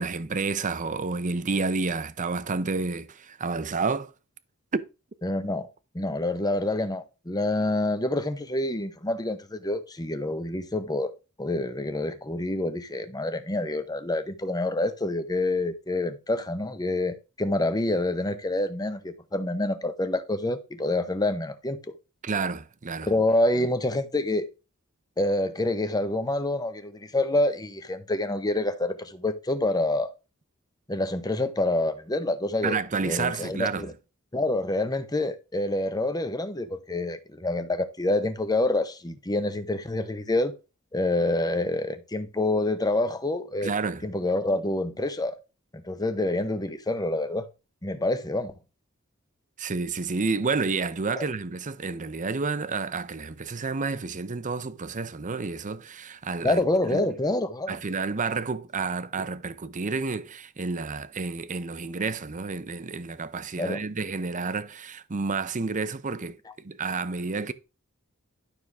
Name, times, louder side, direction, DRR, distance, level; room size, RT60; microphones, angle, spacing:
voice 1, 0.0-4.1 4.7-4.8 22.2-23.1 32.6-33.9 43.6-44.0 49.6-57.1 57.7-67.5, right 4 dB, 35° right, 0.7 m, -30 dB
voice 2, 5.2-5.7 5.9-11.1 11.4-21.8 23.0-24.5 25.2-30.1 30.9-32.8 33.0-33.9 34.3-40.5 40.9-43.7 44.0-45.4 45.7-47.4 47.8-48.5 51.2-51.3 56.4-57.8 63.6-63.8, left 2 dB, 20° left, 1.0 m, -27 dB
12.0 x 6.4 x 3.5 m
head